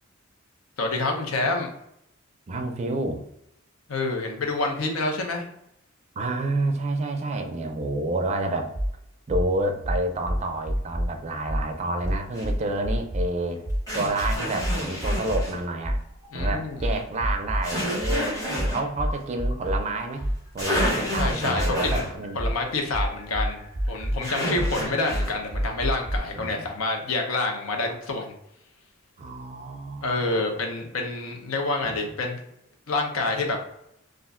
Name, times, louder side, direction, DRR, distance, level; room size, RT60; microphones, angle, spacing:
voice 1, 0.8-1.7 3.9-5.5 16.3-17.0 21.2-22.0 22.3-28.3 30.0-32.4 32.9-33.6, left 2 dB, 90° left, 2 dB, 0.6 m, -28 dB
voice 2, 2.5-3.2 6.2-8.7 9.3-13.6 13.9-16.0 16.3-20.3 20.5-22.4 24.3-24.9 26.4-26.7 29.2-30.1 31.8-32.0, right 2 dB, 35° right, 4 dB, 0.4 m, -29 dB
sound 1, 8.7-8.9 9.3-9.5 9.8-11.1 11.5-11.6 12.0-13.3 13.6-13.8 14.2-15.5 15.8-19.8 20.2-26.2, equal, 70° left, 1.2 m, -27 dB
sound 2, 12.3-12.5 13.9-15.6 17.6-18.8 20.3-20.4 20.6-22.1 24.2-25.3, equal, 15° left, 1.0 m, -30 dB
2.4 x 2.1 x 3.5 m, 0.77 s
head